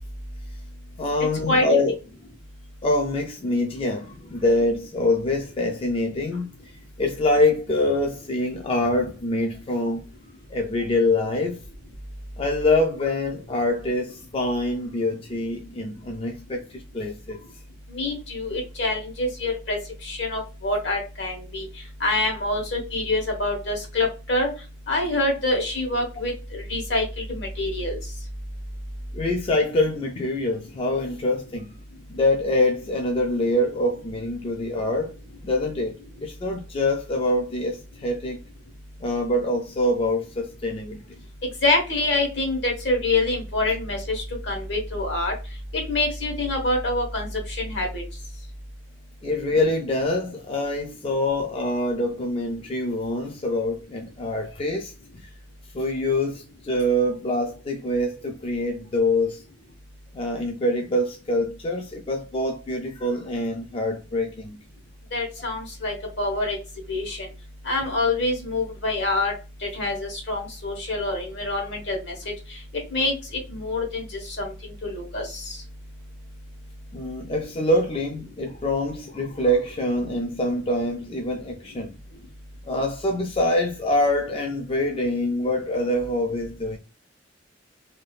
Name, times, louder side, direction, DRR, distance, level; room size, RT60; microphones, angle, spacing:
voice 1, 1.0-2.0 2.8-6.5 7.0-10.0 10.5-11.6 12.4-17.4 29.1-31.7 32.1-35.2 35.4-35.9 36.2-38.4 39.0-41.0 49.2-55.3 55.7-59.4 60.1-64.6 76.9-81.9 82.7-86.8, left 1 dB, 30° left, 0.3 m, -25 dB
voice 2, 17.9-21.7 22.0-24.5 24.9-28.0 41.6-45.3 45.7-48.0 65.1-66.6 66.9-67.3 67.6-69.3 69.6-72.1 72.5-72.6 72.9-73.1 73.5-75.6, left 2 dB, 65° left, 1.2 m, -26 dB
3.3 x 2.7 x 2.3 m
head